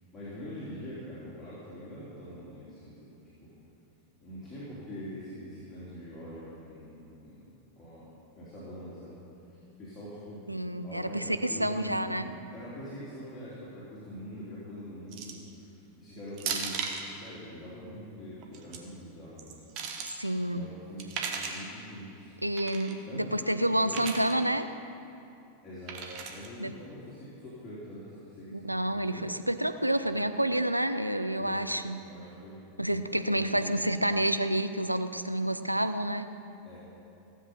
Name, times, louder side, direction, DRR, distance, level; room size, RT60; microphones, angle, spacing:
voice 1, 0.1-3.5 4.2-7.4 7.8-8.0 8.4-9.2 9.5-10.4 10.8-19.6 20.5-22.4 23.1-23.6 23.8-24.0 25.6-28.8 29.1-29.3 30.1-30.2 31.4-31.6 32.0-32.7 33.1-33.8 36.6-36.8, equal, 20° left, -11 dB, 3.6 m, -44 dB
voice 2, 10.5-12.3 20.0-20.7 22.4-24.7 26.6-26.7 28.5-32.0 32.8-36.3, right 1 dB, 90° right, 9 dB, 0.5 m, -29 dB
sound 1, 15.1-15.5 16.4-17.1 18.4-18.8 19.4-20.1 21.0-21.7 22.6-22.9 23.9-24.3 25.9-26.5, right 6 dB, 40° right, 1.4 m, -36 dB
16.0 x 8.1 x 5.7 m, 2.7 s
figure-of-eight pair, 90°, 0 cm